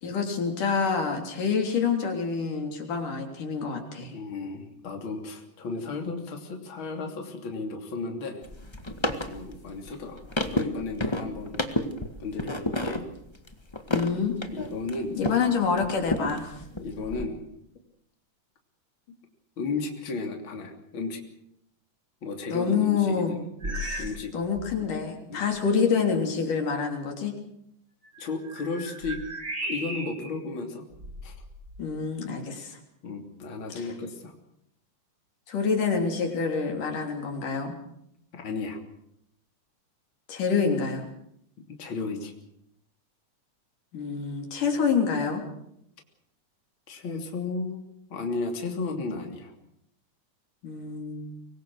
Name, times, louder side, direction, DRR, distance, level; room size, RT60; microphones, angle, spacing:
voice 1, 0.0-4.2 13.9-14.4 15.2-16.6 22.5-23.4 23.7-24.0 24.3-27.3 31.8-32.8 35.5-37.8 40.3-41.1 43.9-45.4 50.6-51.4, left 5 dB, 85° left, 3 dB, 4.9 m, -27 dB
voice 2, 4.1-8.5 9.3-10.2 10.5-11.6 12.2-13.1 14.5-15.3 16.8-17.5 19.6-21.2 22.2-23.4 23.6-24.3 25.3-25.5 28.2-29.2 29.6-30.8 31.2-31.4 33.0-34.3 38.3-38.8 41.8-42.3 46.9-47.8 48.1-49.5, left 3 dB, 40° left, 3 dB, 3.6 m, -34 dB
sound 1, 8.4-15.5 15.8-17.2, left 1 dB, 15° left, 0.8 m, -31 dB
sound 2, 23.6-24.3 24.5-24.9 25.6-25.7 28.0-30.4 30.9-31.9, right 1 dB, 30° right, 3.6 m, -36 dB
25.0 x 22.0 x 6.4 m, 0.75 s
omnidirectional pair, 3.6 m